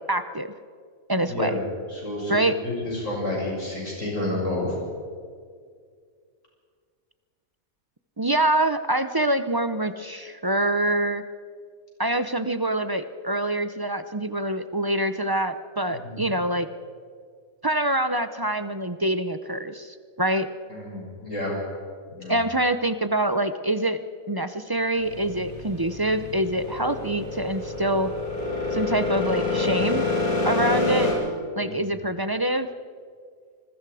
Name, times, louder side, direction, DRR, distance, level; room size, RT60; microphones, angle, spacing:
voice 1, 0.1-0.5 1.1-1.5 2.3-2.6 8.2-11.2 12.0-16.7 17.6-20.5 22.3-24.0 24.3-28.1 28.7-30.0 30.4-31.1 31.6-32.7, right 1 dB, 25° right, 10 dB, 0.4 m, -25 dB
voice 2, 1.2-1.6 1.9-4.8 15.9-16.3 20.7-21.6 22.1-22.4 31.6-31.9, left 1 dB, 60° left, -3 dB, 7.2 m, -30 dB
sound 1, 25.0-31.1, left 2 dB, 75° left, 8.2 m, -27 dB
26.5 x 20.5 x 4.9 m, 2.1 s
omnidirectional pair, 1.5 m